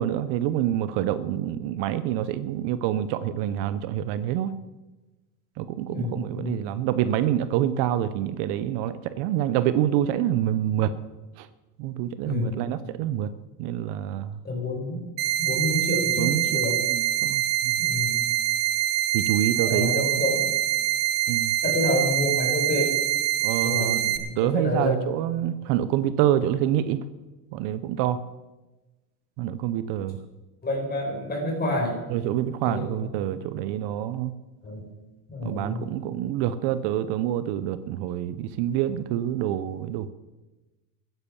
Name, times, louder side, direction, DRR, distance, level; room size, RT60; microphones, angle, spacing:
voice 1, 0.0-4.5 5.6-10.9 11.4-11.5 11.8-13.3 13.6-14.4 16.2-16.6 16.9-17.8 19.1-20.1 21.3-21.5 23.4-24.0 24.4-27.0 27.5-28.2 29.4-30.2 32.1-34.3 35.4-40.1, right 11 dB, 60° right, 13 dB, 0.9 m, -26 dB
voice 2, 5.9-6.6 12.2-12.7 14.4-15.0 15.4-16.8 17.8-18.3 19.6-20.5 21.6-22.9 23.6-25.0 30.6-32.0 32.6-33.1 34.6-34.8 35.3-35.9, left 1 dB, 20° left, 0 dB, 6.0 m, -28 dB
sound 1, 15.2-24.2, right 12 dB, 75° right, 1.9 m, -25 dB
14.5 x 10.0 x 7.0 m, 1.1 s
supercardioid pair, 120°, 48 cm